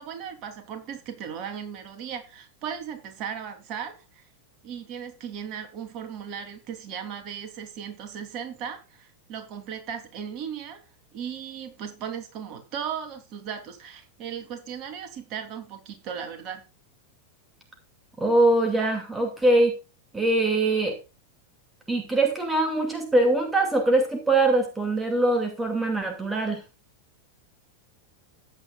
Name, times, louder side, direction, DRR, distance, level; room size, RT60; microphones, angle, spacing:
voice 1, 0.0-4.2 4.6-10.8 11.1-16.6, right 8 dB, 40° right, 3.3 m, -37 dB
voice 2, 18.2-19.7 20.1-21.0 21.9-26.6, right 2 dB, 10° right, 2.4 m, -22 dB
15.0 x 9.9 x 2.4 m
figure-of-eight pair, 90°, 0 cm